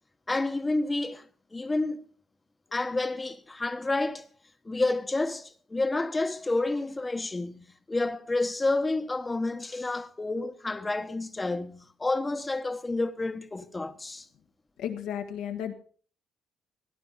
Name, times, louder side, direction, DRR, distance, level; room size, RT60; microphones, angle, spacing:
voice 1, 0.3-2.1 2.7-4.3 4.6-14.3, left 2 dB, 20° left, 1.1 m, -30 dB
voice 2, 14.8-15.7, left 9 dB, 90° left, 1.7 m, -33 dB
17.0 x 10.0 x 4.2 m
cardioid pair, 90°, 0 cm